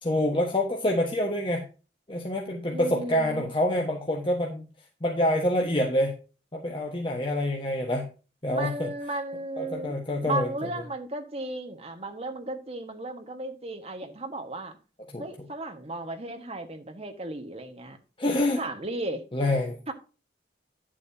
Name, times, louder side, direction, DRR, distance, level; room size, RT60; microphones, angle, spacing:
voice 1, 0.0-1.6 2.1-4.7 5.0-6.1 6.5-8.1 8.4-8.9 9.6-10.7 15.1-15.2 18.2-18.6 19.3-19.8, left 1 dB, 30° left, 1.4 m, -26 dB
voice 2, 2.7-3.5 8.5-14.8 15.2-18.0 18.6-19.2 19.9-20.0, right 1 dB, 35° right, 1.5 m, -35 dB
11.0 x 7.6 x 2.8 m
head